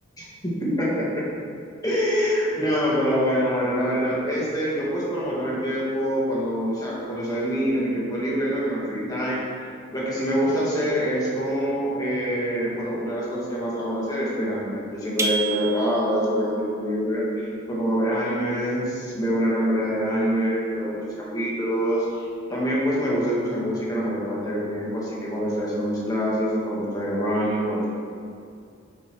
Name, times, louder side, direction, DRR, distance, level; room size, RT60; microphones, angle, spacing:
voice 1, 0.6-1.3 1.8-9.4 9.9-27.9, equal, 15° left, -7 dB, 1.7 m, -25 dB
sound 1, 15.2-16.3, right 3 dB, 15° right, 0.3 m, -28 dB
10.5 x 5.2 x 3.3 m, 2.3 s
head